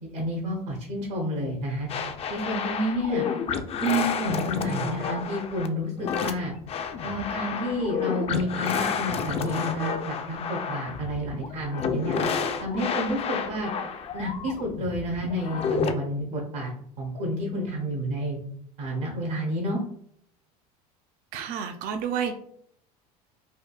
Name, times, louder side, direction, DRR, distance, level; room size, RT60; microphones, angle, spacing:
voice 1, 0.0-1.9 2.3-3.3 3.8-6.5 7.0-12.2 12.6-13.7 14.1-16.7 17.0-18.4 18.8-19.8, equal, 80° right, -1 dB, 0.9 m, -30 dB
sound 1, 1.9-15.9, left 6 dB, 30° left, 0.3 m, -30 dB
voice 2, 21.3-22.3, right 7 dB, 45° right, 6 dB, 0.4 m, -30 dB
3.4 x 2.3 x 2.3 m, 0.67 s
hypercardioid pair, 90°, 20 cm